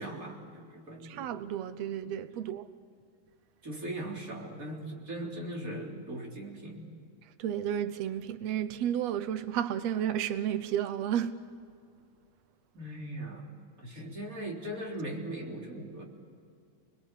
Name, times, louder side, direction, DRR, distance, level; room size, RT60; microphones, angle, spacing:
voice 1, 0.0-1.3 2.0-2.1 3.6-6.9 12.7-13.5 13.8-16.0, right 1 dB, 25° right, 3.8 m, -39 dB
voice 2, 1.0-2.7 7.4-11.4, right 10 dB, 90° right, 1.4 m, -32 dB
30.0 x 21.0 x 8.4 m
omnidirectional pair, 4.1 m